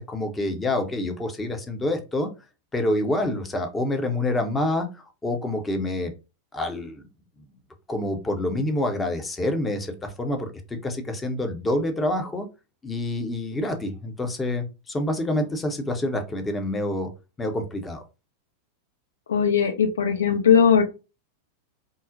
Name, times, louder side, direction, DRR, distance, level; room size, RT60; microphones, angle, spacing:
voice 1, 0.0-2.3 2.7-6.1 6.5-7.1 7.9-12.5 12.8-17.1 17.4-18.0, left 1 dB, 15° left, 5 dB, 0.6 m, -27 dB
voice 2, 19.3-20.8, left 7 dB, 65° left, 5 dB, 0.6 m, -19 dB
3.8 x 2.0 x 2.5 m, 0.29 s
figure-of-eight pair, 90°, 0 cm